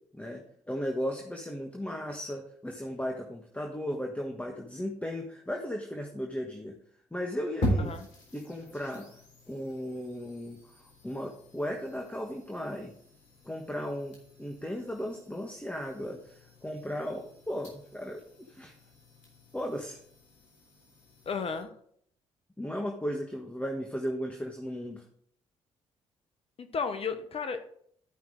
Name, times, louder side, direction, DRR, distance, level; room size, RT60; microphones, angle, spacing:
voice 1, 0.1-6.8 7.1-7.9 8.3-9.1 9.5-12.9 13.4-18.7 19.5-20.0 22.6-25.0, equal, 10° left, 1 dB, 1.4 m, -36 dB
sound 1, 7.6-21.6, equal, 75° left, 3.7 m, -41 dB
voice 2, 21.3-21.7 26.6-27.6, left 5 dB, 45° left, 8 dB, 1.0 m, -33 dB
13.0 x 5.6 x 3.8 m, 0.65 s
hypercardioid pair, 50°, 14 cm